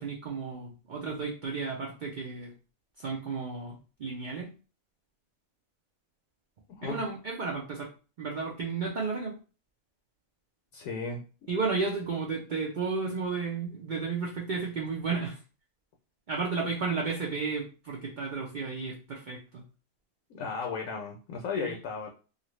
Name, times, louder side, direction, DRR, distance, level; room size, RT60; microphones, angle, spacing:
voice 1, 0.0-2.5 3.0-4.5 6.8-7.9 8.2-9.4 11.5-15.4 16.3-19.6 21.6-21.7, right 4 dB, 65° right, -2 dB, 0.4 m, -33 dB
voice 2, 10.7-11.2 20.3-22.1, left 5 dB, 75° left, 2 dB, 0.9 m, -35 dB
2.6 x 2.4 x 3.0 m, 0.35 s
omnidirectional pair, 1.5 m